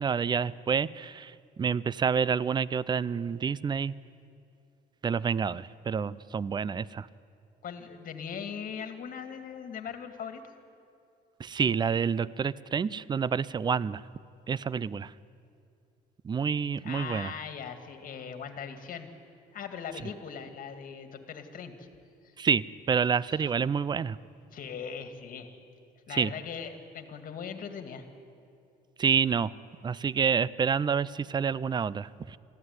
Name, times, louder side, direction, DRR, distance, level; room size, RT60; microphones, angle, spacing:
voice 1, 0.0-3.9 5.0-7.1 11.4-14.0 14.5-15.1 16.2-17.3 22.4-24.2 26.1-26.3 29.0-29.5 29.8-32.4, right 6 dB, 25° right, 20 dB, 0.5 m, -28 dB
voice 2, 7.6-10.5 16.8-19.1 19.5-21.9 22.2-22.3 23.3-23.5 24.5-25.6 26.1-28.1, left 7 dB, 55° left, 8 dB, 2.1 m, -40 dB
21.0 x 14.5 x 9.6 m, 2.5 s
cardioid pair, 110°, 17 cm